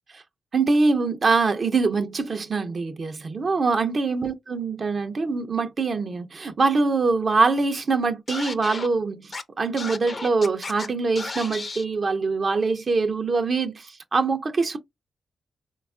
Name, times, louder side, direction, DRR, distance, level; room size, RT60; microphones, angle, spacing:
voice 1, 0.5-14.8, right 4 dB, 60° right, 0.4 m, -24 dB
Scratching (performance technique), 8.3-8.9 9.3-9.4 9.8-10.9 11.2-11.8, left 3 dB, 50° left, 0.5 m, -33 dB
3.3 x 2.2 x 2.4 m
cardioid pair, 50°, 0 cm